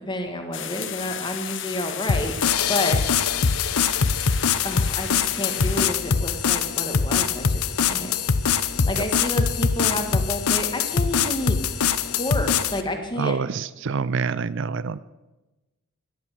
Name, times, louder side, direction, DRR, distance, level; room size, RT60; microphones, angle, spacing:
voice 1, 0.1-2.4 2.7-3.0 4.6-11.6 12.0-13.4, left 1 dB, 20° left, 5 dB, 2.0 m, -30 dB
sound 1, 0.5-5.9, left 11 dB, 55° left, 0.9 m, -33 dB
sound 2, 2.1-12.8, left 6 dB, 80° left, 0.9 m, -23 dB
voice 2, 13.2-15.0, right 5 dB, 55° right, 17 dB, 0.4 m, -26 dB
18.0 x 11.5 x 6.8 m, 1.1 s
head